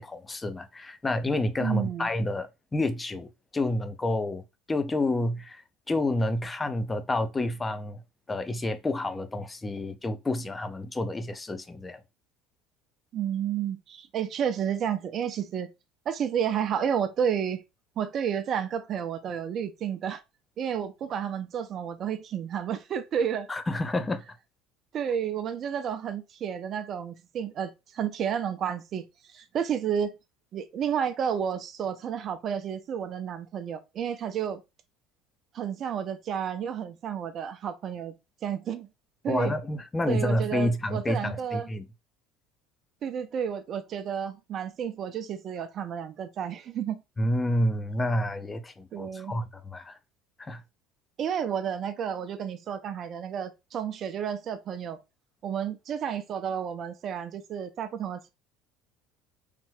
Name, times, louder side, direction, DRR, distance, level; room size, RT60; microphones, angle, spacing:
voice 1, 0.0-8.0 8.3-12.0 23.5-24.2 39.3-41.8 47.2-50.0 50.4-50.6, left 1 dB, 20° left, 0.6 m, -29 dB
voice 2, 1.6-2.1 13.1-15.7 16.1-17.6 18.0-20.2 20.6-23.5 24.9-29.0 29.3-30.1 30.5-34.6 35.5-38.1 38.4-38.9 39.2-39.5 40.1-41.7 43.0-47.0 48.9-49.3 51.2-55.0 55.4-58.3, right 8 dB, 45° right, 0.6 m, -31 dB
3.3 x 2.5 x 3.3 m
figure-of-eight pair, 60°, 0 cm